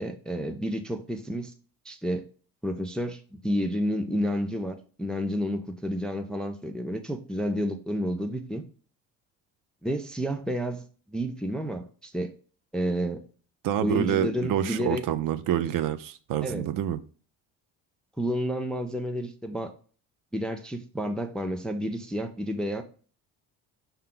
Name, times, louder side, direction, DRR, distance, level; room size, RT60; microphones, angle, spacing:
voice 1, 0.0-1.5 1.9-2.3 2.6-8.6 9.8-12.3 12.7-13.2 13.8-15.0 16.4-16.7 18.2-19.7 20.3-22.8, equal, ahead, 0.4 m, -30 dB
voice 2, 13.6-17.0, right 11 dB, 55° right, 0.5 m, -27 dB
5.5 x 2.3 x 3.7 m
supercardioid pair, 70°, 40 cm